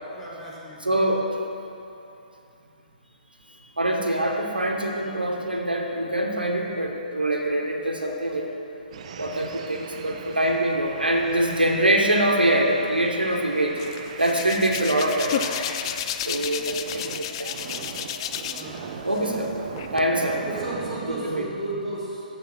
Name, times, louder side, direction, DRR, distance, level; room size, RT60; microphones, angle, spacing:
voice 1, 0.0-1.1 6.4-6.7 18.5-19.1 20.4-22.3, right 1 dB, 5° left, -10 dB, 2.1 m, -35 dB
voice 2, 0.8-1.2 3.8-8.5 9.2-13.8 14.2-15.4 16.2-17.5 19.0-19.5 19.9-20.4 21.3-21.4, right 1 dB, 90° right, 1 dB, 1.0 m, -24 dB
sound 1, 8.9-16.1 16.5-21.3, right 6 dB, 45° right, 0.5 m, -38 dB
Hands, 13.8-18.8 19.1-20.0, left 9 dB, 35° left, 0.3 m, -32 dB
7.1 x 6.6 x 6.1 m, 2.8 s
figure-of-eight pair, 130°, 5 cm